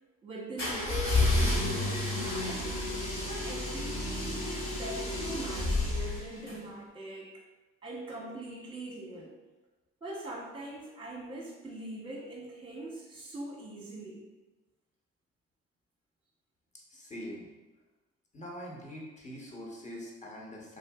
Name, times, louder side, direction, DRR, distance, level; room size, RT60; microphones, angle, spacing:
voice 1, 0.2-2.7 3.2-7.4 7.8-9.3 10.0-14.2, right 2 dB, 15° right, -3 dB, 0.9 m, -42 dB
sound 1, 0.6-6.6, left 2 dB, 65° left, 1.4 m, -30 dB
voice 2, 16.9-17.5 18.3-20.8, equal, 20° left, -3 dB, 1.0 m, -43 dB
3.6 x 2.5 x 2.3 m, 1.2 s
supercardioid pair, 55°, 35 cm